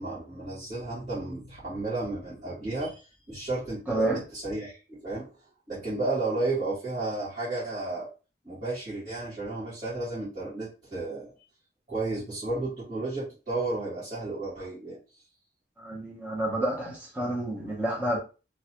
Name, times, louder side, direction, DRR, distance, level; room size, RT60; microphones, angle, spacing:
voice 1, 0.0-5.3 5.7-8.1 8.4-11.3 11.9-15.0, right 2 dB, 40° right, 1.7 m, -33 dB
voice 2, 3.9-4.2 15.8-18.2, right 1 dB, 10° right, 0.7 m, -29 dB
3.1 x 2.3 x 2.8 m
head